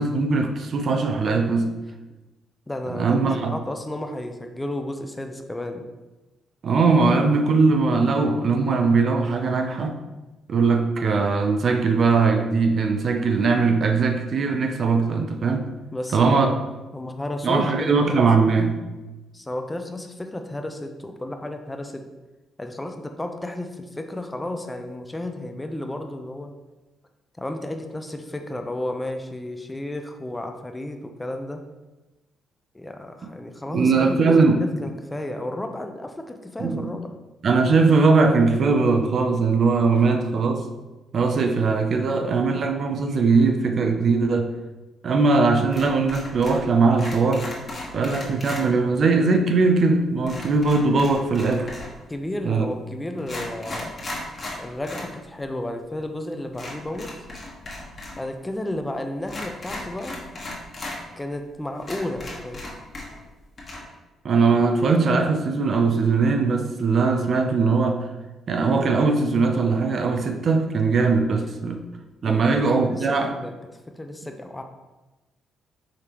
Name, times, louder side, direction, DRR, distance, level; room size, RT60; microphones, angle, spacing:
voice 1, 0.0-1.7 2.9-3.5 6.6-10.0 10.5-15.7 16.1-16.5 17.4-18.8 33.7-34.6 36.6-36.9 37.4-40.6 41.1-44.5 45.0-47.5 47.9-51.7 52.4-52.7 64.2-68.1 68.5-71.8 72.2-73.3, right 4 dB, 55° right, 4 dB, 0.5 m, -20 dB
voice 2, 2.7-5.9 15.9-16.6 16.9-18.3 19.3-22.0 22.6-26.5 27.4-31.6 32.7-37.1 39.9-40.1 52.1-53.9 54.6-57.3 58.2-60.2 61.2-62.6 72.2-72.5 72.9-73.5 73.9-74.6, left 1 dB, 15° left, 5 dB, 0.5 m, -32 dB
sound 1, 45.7-46.7 46.9-48.6 50.3-52.0 52.7-52.8 53.2-55.1 55.4-55.5 56.5-58.2 58.5-58.6 59.2-61.0 61.4-61.5 61.8-63.3 63.6-63.8, left 2 dB, 40° left, 1.3 m, -36 dB
4.9 x 3.3 x 2.9 m, 1.1 s
supercardioid pair, 60°, 0 cm